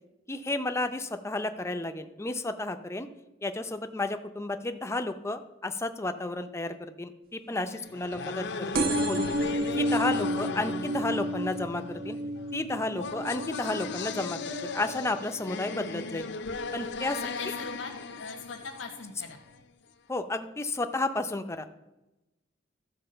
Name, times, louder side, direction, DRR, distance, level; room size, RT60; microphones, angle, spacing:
voice 1, 0.3-3.1 3.4-9.4 9.7-12.2 12.5-16.3 16.7-17.3 20.1-21.7, left 2 dB, 15° left, 8 dB, 0.5 m, -32 dB
sound 1, 7.7-19.6, left 4 dB, 65° left, 0.6 m, -37 dB
sound 2, 8.7-16.0 16.5-16.9 17.8-17.9 18.1-18.2 18.4-18.5, right 1 dB, 50° right, 0.8 m, -32 dB
voice 2, 17.2-19.4, left 4 dB, 85° left, 2 dB, 1.1 m, -41 dB
12.5 x 4.7 x 6.7 m, 1.0 s
head